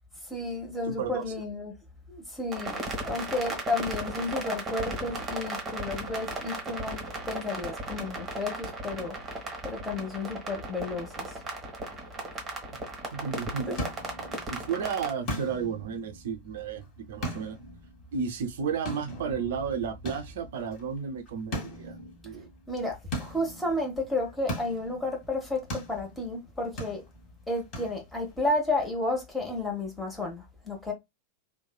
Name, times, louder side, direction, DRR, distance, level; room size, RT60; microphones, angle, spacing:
voice 1, 0.2-1.7 2.1-7.0 7.3-11.4 13.7-13.8 22.7-27.0 27.5-30.9, left 2 dB, 10° left, 1.0 m, -32 dB
voice 2, 0.9-1.2 13.1-13.8 14.5-17.6 18.1-22.0 22.2-22.5, right 6 dB, 55° right, 0.5 m, -33 dB
sound 1, 2.5-15.1, right 2 dB, 20° right, 1.0 m, -36 dB
sound 2, 13.3-28.4, equal, 35° left, 1.5 m, -41 dB
3.0 x 2.2 x 2.3 m
figure-of-eight pair, 90°, 0 cm